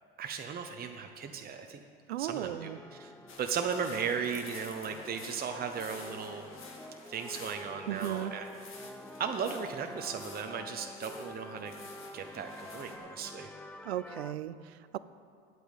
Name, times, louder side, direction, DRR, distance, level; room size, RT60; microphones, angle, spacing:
voice 1, 0.2-1.8 2.2-3.1 3.4-6.4 7.1-8.5 9.2-11.7 12.1-13.5, right 6 dB, 30° right, 4 dB, 0.9 m, -36 dB
voice 2, 2.1-2.8 7.9-8.4 13.8-15.0, right 12 dB, 90° right, 15 dB, 0.5 m, -36 dB
sound 1, 2.4-14.3, left 1 dB, 5° left, 0.5 m, -48 dB
sound 2, 3.3-13.0, left 3 dB, 40° left, 2.2 m, -50 dB
9.4 x 8.3 x 8.1 m, 2.2 s
hypercardioid pair, 80°, 31 cm